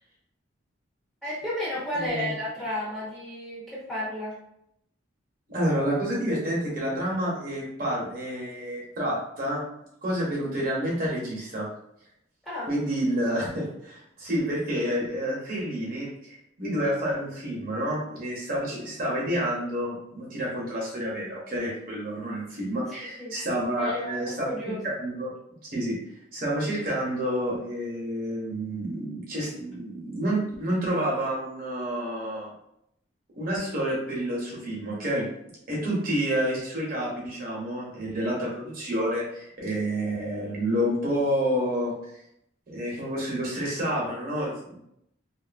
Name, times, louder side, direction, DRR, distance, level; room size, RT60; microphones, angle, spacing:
voice 1, 1.2-4.4 12.4-12.7 22.9-23.3 23.8-24.8, left 1 dB, ahead, -8 dB, 0.7 m, -32 dB
voice 2, 1.9-2.3 5.5-9.6 10.0-11.7 12.7-24.5 24.8-25.3 25.6-26.0 26.3-32.5 33.4-35.3 35.7-41.9 42.7-44.8, equal, 50° right, -4 dB, 0.9 m, -29 dB
2.5 x 2.4 x 2.4 m, 0.76 s
head